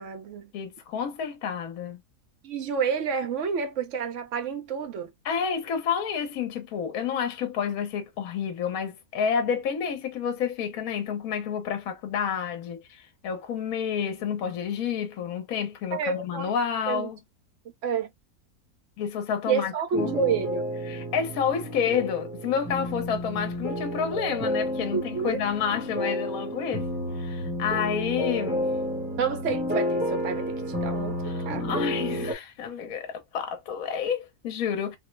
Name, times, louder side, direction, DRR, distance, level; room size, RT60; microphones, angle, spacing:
voice 1, 0.0-0.5 2.4-5.1 15.9-16.5 16.9-17.1 17.8-18.1 19.5-20.6 24.9-25.4 29.2-31.1 31.4-31.8, right 6 dB, 60° right, 1.0 m, -29 dB
voice 2, 0.5-2.0 5.2-17.2 19.0-20.1 20.8-26.9 27.1-28.7 31.2-35.0, left 7 dB, 70° left, 1.2 m, -29 dB
sound 1, 19.9-32.3, equal, 10° right, 0.9 m, -31 dB
3.7 x 2.0 x 3.1 m
omnidirectional pair, 1.6 m